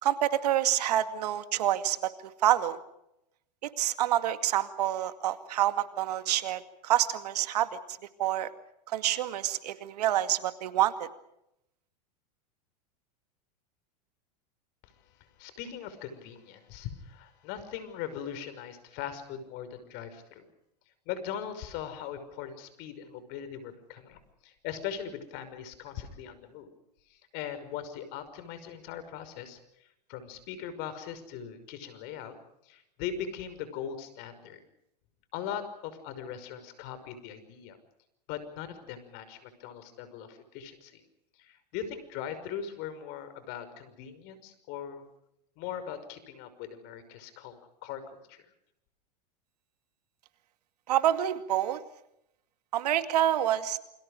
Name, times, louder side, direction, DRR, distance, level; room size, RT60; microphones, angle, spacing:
voice 1, 0.0-2.0 2.4-2.8 3.6-7.7 8.2-8.5 8.9-11.1 50.9-51.8 52.7-53.8, right 12 dB, 75° right, 10 dB, 2.2 m, -27 dB
voice 2, 15.2-20.5 21.1-26.7 27.1-29.6 30.1-32.4 32.6-34.6 35.3-37.8 38.3-41.0 41.4-45.0 45.6-48.4, left 8 dB, 55° left, 11 dB, 5.8 m, -40 dB
28.5 x 26.5 x 5.1 m, 0.81 s
hypercardioid pair, 105°, 21 cm